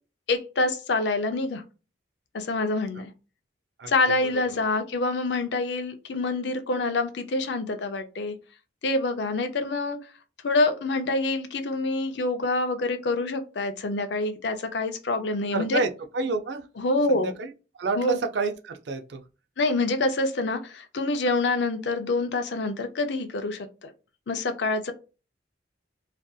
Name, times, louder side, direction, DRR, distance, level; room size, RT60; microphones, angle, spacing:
voice 1, 0.3-1.6 2.3-3.1 3.9-8.3 8.8-10.0 10.4-15.8 16.8-17.3 17.9-18.2 19.6-23.9 24.3-24.9, left 2 dB, 65° left, 0.5 m, -26 dB
voice 2, 15.5-15.9 16.1-16.6 17.1-17.5 17.8-19.2, right 3 dB, 65° right, 0.4 m, -28 dB
2.6 x 2.4 x 2.3 m
head